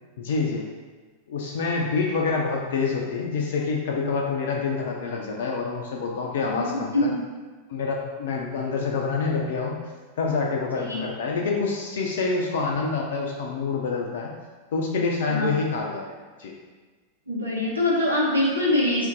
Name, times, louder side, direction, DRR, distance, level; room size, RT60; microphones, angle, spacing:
voice 1, 0.2-0.7 1.3-7.1 7.7-9.8 10.2-14.3 14.7-16.5, left 4 dB, 60° left, -1 dB, 0.3 m, -27 dB
voice 2, 15.3-15.6 17.3-19.1, left 1 dB, 80° right, -5 dB, 0.7 m, -23 dB
2.5 x 2.1 x 3.9 m, 1.4 s
figure-of-eight pair, 90°, 0 cm